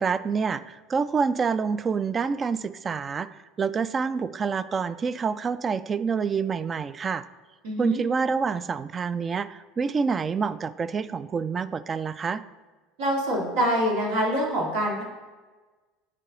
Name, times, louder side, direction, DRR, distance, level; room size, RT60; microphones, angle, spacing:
voice 1, 0.0-3.3 3.6-7.2 7.8-12.4, right 5 dB, 30° right, 15 dB, 0.3 m, -27 dB
voice 2, 7.6-8.0 13.0-15.0, equal, 80° right, -2 dB, 2.1 m, -25 dB
9.8 x 4.7 x 3.9 m, 1.3 s
supercardioid pair, 95°, 0 cm